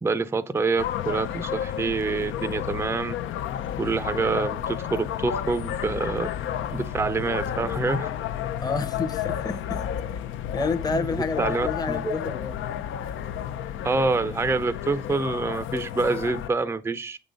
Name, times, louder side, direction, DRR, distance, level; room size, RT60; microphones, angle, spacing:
voice 1, 0.0-3.1 3.8-6.3 6.7-8.1 10.9-11.0 11.4-12.2 13.8-17.2, right 3 dB, 10° right, 0.5 m, -26 dB
sound 1, 0.8-16.5, left 10 dB, 80° left, 0.6 m, -31 dB
voice 2, 8.6-9.8 10.5-12.7, left 4 dB, 20° left, 0.7 m, -29 dB
7.0 x 3.9 x 5.1 m
cardioid pair, 90°, 20 cm